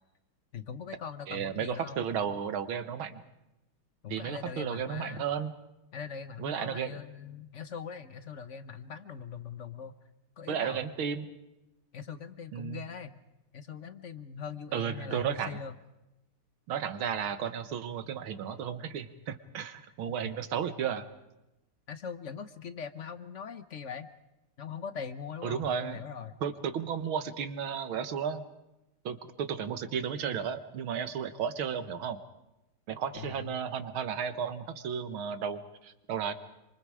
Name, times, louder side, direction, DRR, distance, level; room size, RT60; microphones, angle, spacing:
voice 1, 0.5-2.4 4.0-5.2 5.9-9.9 10.4-10.8 11.9-13.1 13.5-15.7 21.9-24.1 24.6-26.4 33.1-33.6, left 6 dB, 50° left, 12 dB, 0.9 m, -41 dB
voice 2, 1.3-3.2 4.1-5.5 6.4-6.9 10.5-11.3 12.5-12.8 14.7-15.6 16.7-21.1 25.4-26.0 26.4-28.4 29.1-32.2 32.9-36.3, right 7 dB, 75° right, 11 dB, 2.1 m, -33 dB
27.5 x 26.0 x 4.9 m, 0.95 s
omnidirectional pair, 2.4 m